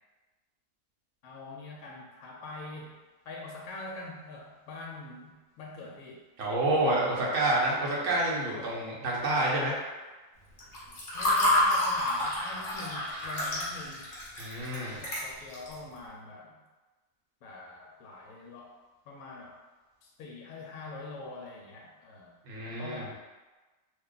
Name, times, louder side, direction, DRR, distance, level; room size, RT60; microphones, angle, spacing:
voice 1, 1.2-6.2 6.6-6.8 8.5-8.9 10.9-14.1 14.7-16.6 17.4-18.8 19.1-19.6 20.0-22.3 22.6-23.2, left 3 dB, 65° left, -2 dB, 1.0 m, -44 dB
voice 2, 6.4-9.8 14.4-15.0 22.5-23.0, right 2 dB, 60° right, -4 dB, 0.9 m, -28 dB
Water / Fill (with liquid), 10.6-15.7, left 1 dB, 45° left, 0.7 m, -28 dB
2.8 x 2.2 x 3.8 m, 1.2 s
omnidirectional pair, 1.9 m